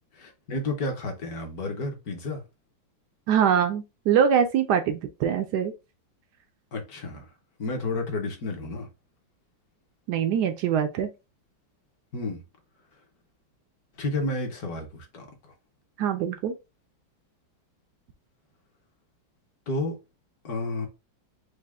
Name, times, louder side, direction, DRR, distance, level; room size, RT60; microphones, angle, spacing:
voice 1, 0.1-2.4 6.7-7.3 7.6-8.9 12.1-12.4 14.0-15.4 19.7-20.0 20.4-20.9, left 2 dB, 55° left, 1.3 m, -31 dB
voice 2, 3.3-5.7 10.1-11.1 16.0-16.5, right 8 dB, 70° right, 1.0 m, -23 dB
4.9 x 2.4 x 3.4 m
omnidirectional pair, 2.1 m